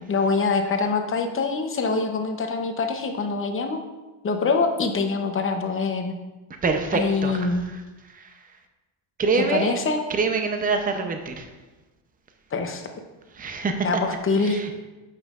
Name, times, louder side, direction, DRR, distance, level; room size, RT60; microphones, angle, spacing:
voice 1, 0.1-3.8 4.2-6.1 6.9-7.7 9.5-10.0 12.5-12.8 13.8-14.7, left 4 dB, 25° left, 5 dB, 0.7 m, -24 dB
voice 2, 6.6-8.6 9.2-9.8 10.1-11.5 13.3-14.7, right 4 dB, 20° right, 5 dB, 0.6 m, -26 dB
9.0 x 5.7 x 2.4 m, 1.1 s
cardioid pair, 110°, 49 cm